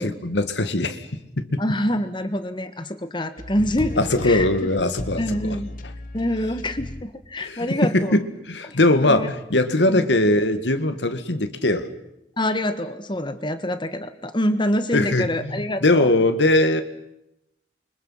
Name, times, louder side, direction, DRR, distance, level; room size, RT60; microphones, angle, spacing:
voice 1, 0.2-1.6 4.0-5.6 7.4-11.9 14.9-16.8, left 2 dB, 75° left, 10 dB, 1.9 m, -21 dB
voice 2, 1.6-4.4 5.2-5.7 6.1-8.2 8.7-9.3 9.9-10.1 12.4-16.1, left 1 dB, 25° left, 10 dB, 1.5 m, -26 dB
sound 1, 3.4-7.1 7.6-7.7, left 1 dB, 50° left, 1.3 m, -35 dB
29.0 x 25.0 x 5.8 m, 0.84 s
head